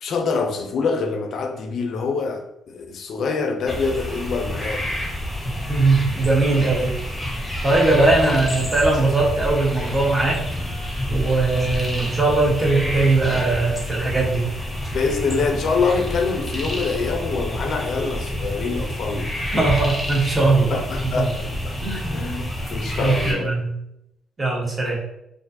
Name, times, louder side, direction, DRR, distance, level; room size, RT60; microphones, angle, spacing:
voice 1, 0.0-4.9 8.3-8.7 14.9-19.3 20.7-21.8 22.1-23.5, left 4 dB, 65° left, 0.4 m, -25 dB
sound 1, 3.7-23.3, equal, 10° left, 0.8 m, -28 dB
voice 2, 5.7-6.9 7.6-10.4 11.1-14.5 19.5-21.3 21.8-22.2 23.0-23.7 24.4-25.0, right 3 dB, 25° right, 0.8 m, -20 dB
2.4 x 2.2 x 2.6 m
cardioid pair, 90°, 0 cm